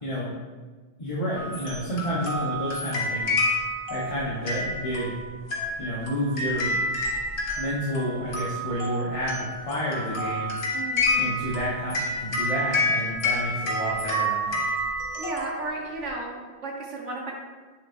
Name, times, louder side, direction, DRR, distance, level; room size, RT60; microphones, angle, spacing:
voice 1, 0.0-0.3 1.0-3.4 3.9-5.1 5.8-6.8 7.6-10.5 11.2-14.6, equal, 30° left, -7 dB, 1.1 m, -30 dB
sound 1, 1.3-16.1, left 1 dB, 85° left, 1.6 m, -29 dB
voice 2, 10.7-11.1 15.2-17.3, right 2 dB, 70° right, -1 dB, 1.6 m, -34 dB
8.1 x 7.1 x 2.7 m, 1.4 s
omnidirectional pair, 1.3 m